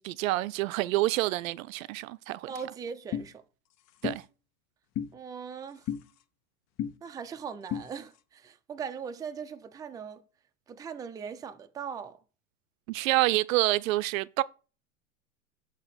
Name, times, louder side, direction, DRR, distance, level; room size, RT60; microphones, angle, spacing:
voice 1, 0.0-2.5 4.0-4.2 12.9-14.4, right 18 dB, 70° right, 0.5 m, -27 dB
voice 2, 2.5-3.4 5.1-5.9 7.0-10.2 10.7-12.2, right 6 dB, 10° right, 0.4 m, -40 dB
sound 1, 3.1-3.3 4.0-4.2 5.0-5.1 5.9-6.0 6.8-6.9 7.7-7.9, left 9 dB, 40° left, 0.7 m, -31 dB
7.8 x 2.9 x 5.7 m
hypercardioid pair, 110°, 43 cm